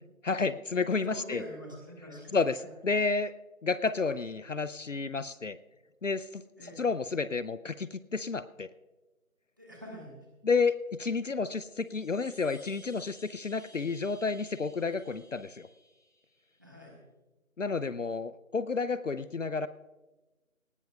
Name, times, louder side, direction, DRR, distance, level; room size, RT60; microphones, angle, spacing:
voice 1, 0.3-1.4 2.3-2.6 2.8-3.3 3.6-5.6 6.0-8.7 10.4-15.7 17.6-19.7, left 4 dB, 60° left, 15 dB, 0.6 m, -31 dB
voice 2, 1.1-2.7 6.6-6.8 9.6-10.1 16.6-17.0, equal, 15° right, -2 dB, 1.6 m, -45 dB
sound 1, 11.7-16.7, equal, 70° right, 3.7 m, -58 dB
19.0 x 18.5 x 2.3 m, 1.1 s
figure-of-eight pair, 175°, 42 cm